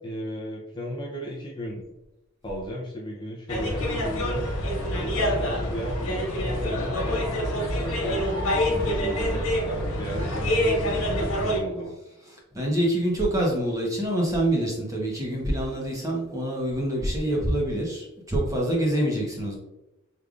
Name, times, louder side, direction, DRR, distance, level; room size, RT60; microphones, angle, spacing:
voice 1, 0.0-1.9 2.4-4.5 5.0-12.0, equal, 20° left, -3 dB, 0.5 m, -35 dB
sound 1, 3.5-11.6, equal, 80° left, 1.4 m, -26 dB
voice 2, 12.0-19.6, right 1 dB, 15° right, -3 dB, 0.9 m, -26 dB
5.1 x 3.3 x 2.4 m, 0.96 s
head